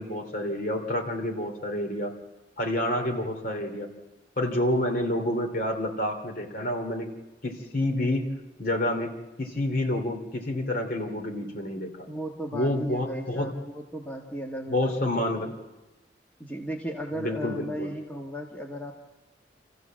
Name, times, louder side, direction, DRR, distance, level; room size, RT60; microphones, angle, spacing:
voice 1, 0.0-2.1 2.6-3.9 4.4-7.1 7.4-8.2 8.6-9.1 9.4-12.1 12.5-13.5 14.7-15.5 17.1-17.9, left 1 dB, 50° left, 3 dB, 2.8 m, -28 dB
voice 2, 12.1-15.5 16.4-18.9, equal, 10° left, 0 dB, 1.4 m, -36 dB
27.0 x 14.5 x 7.5 m, 1.1 s
head